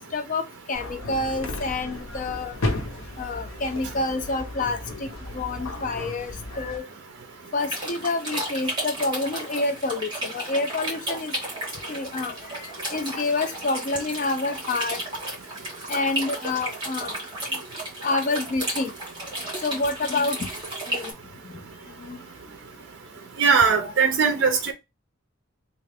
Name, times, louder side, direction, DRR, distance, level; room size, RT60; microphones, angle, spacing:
voice 1, 0.0-2.5 3.2-5.1 5.3-6.8 7.5-11.3 11.9-12.4 12.6-15.0 15.9-17.2 18.0-18.9 19.6-20.5 20.9-21.1 22.1-22.2 23.5-23.9 24.4-24.5, left 3 dB, 35° left, 0.4 m, -28 dB
sound 1, 0.7-6.8, left 1 dB, 85° left, 0.8 m, -34 dB
sound 2, 7.6-21.1, right 1 dB, 20° right, 1.4 m, -33 dB
voice 2, 23.4-24.7, right 6 dB, 55° right, 0.5 m, -20 dB
3.2 x 2.3 x 3.4 m
head